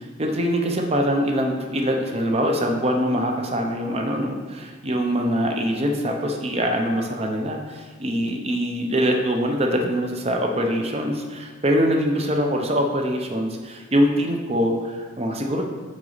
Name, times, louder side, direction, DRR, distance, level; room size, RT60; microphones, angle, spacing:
voice 1, 0.0-15.6, equal, 30° right, 2 dB, 0.6 m, -23 dB
6.2 x 4.0 x 3.9 m, 1.4 s
head